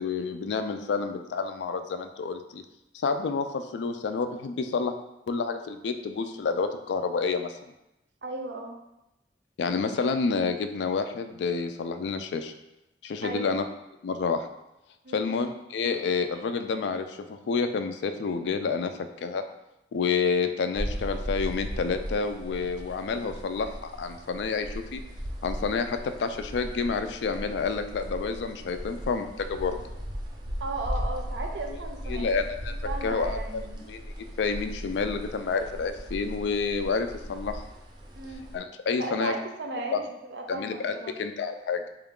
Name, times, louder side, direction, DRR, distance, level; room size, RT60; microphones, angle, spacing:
voice 1, 0.0-2.6 2.9-4.9 5.3-7.5 9.6-12.5 13.0-13.6 14.0-14.5 15.1-18.9 19.2-19.4 19.9-25.0 25.4-29.8 31.7-31.8 32.1-32.7 33.0-33.6 33.9-37.6 38.5-39.3 39.9-40.0 40.5-41.8, left 5 dB, 70° left, 8 dB, 0.3 m, -29 dB
voice 2, 8.2-8.8 13.2-13.5 15.0-15.3 30.6-32.4 32.7-33.9 38.1-38.5 39.0-41.2, right 2 dB, 75° right, 3 dB, 0.5 m, -36 dB
sound 1, 20.8-38.6, equal, 25° right, 0.5 m, -37 dB
3.8 x 2.3 x 3.6 m, 0.90 s
head